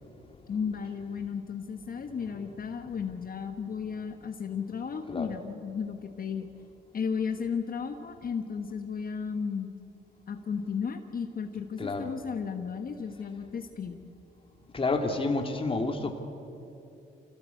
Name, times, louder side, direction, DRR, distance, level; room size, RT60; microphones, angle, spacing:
voice 1, 0.5-6.5 6.9-9.7 10.3-14.0, left 6 dB, 45° left, 6 dB, 1.3 m, -34 dB
voice 2, 14.7-16.2, left 3 dB, 25° left, 4 dB, 2.3 m, -29 dB
25.5 x 17.0 x 8.4 m, 2.8 s
cardioid pair, 90°, 20 cm